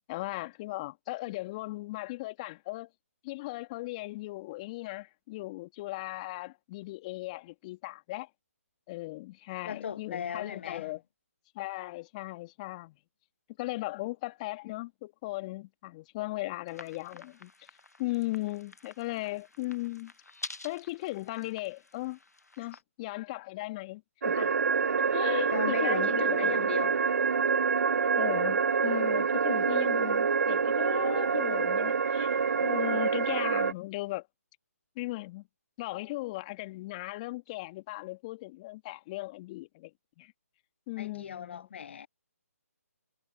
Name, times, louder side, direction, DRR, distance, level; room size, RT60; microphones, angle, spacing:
voice 1, 0.1-2.9 3.2-8.3 8.9-11.0 11.5-13.0 13.6-17.7 18.0-20.1 20.6-22.2 22.6-24.6 25.0-26.1 26.4-26.6 28.2-32.4 32.6-34.3 35.0-35.5 35.8-39.9 40.2-40.3 40.9-41.7, left 20 dB, 25° left, 2.2 m, -37 dB
voice 2, 9.6-10.9 25.5-27.0 41.0-42.1, left 8 dB, 45° left, 0.8 m, -37 dB
sound 1, 16.7-22.8, left 2 dB, 85° left, 1.5 m, -48 dB
sound 2, 24.2-33.7, right 5 dB, 70° right, 0.3 m, -26 dB
figure-of-eight pair, 145°, 8 cm